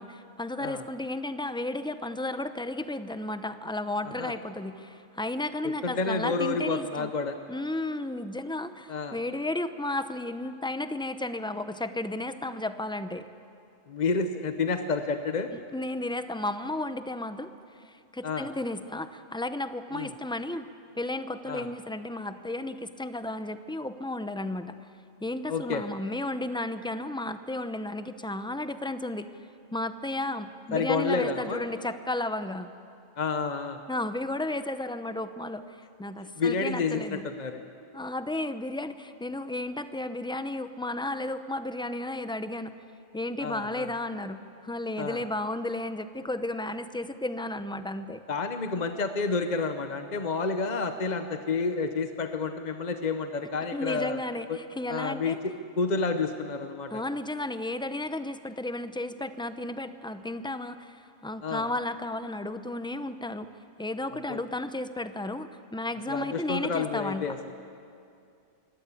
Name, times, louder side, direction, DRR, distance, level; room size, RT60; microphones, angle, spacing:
voice 1, 0.0-7.1 7.5-13.3 15.5-17.5 17.8-20.7 20.9-24.8 25.2-29.3 29.7-32.7 33.9-37.3 37.9-42.8 43.1-48.2 53.7-55.4 56.9-63.5 63.8-67.4, left 2 dB, 5° left, 11 dB, 0.4 m, -33 dB
voice 2, 5.6-7.4 8.9-9.2 13.9-15.5 18.2-18.5 19.9-20.1 21.4-21.7 25.5-25.8 30.7-31.6 33.2-33.8 36.4-37.6 43.4-43.9 45.0-45.2 48.3-54.2 54.5-54.6 54.9-57.0 61.4-61.7 64.3-64.4 66.1-67.5, left 4 dB, 40° left, 8 dB, 0.9 m, -30 dB
24.0 x 17.5 x 8.4 m, 2.5 s
omnidirectional pair, 1.3 m